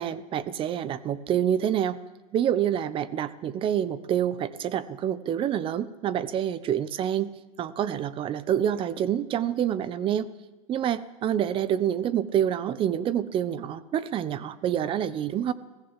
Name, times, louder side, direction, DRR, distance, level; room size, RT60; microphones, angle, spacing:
voice 1, 0.0-2.0 2.3-10.3 10.7-15.5, right 10 dB, 30° right, 16 dB, 1.0 m, -27 dB
21.0 x 15.5 x 8.3 m, 1.1 s
supercardioid pair, 135°, 19 cm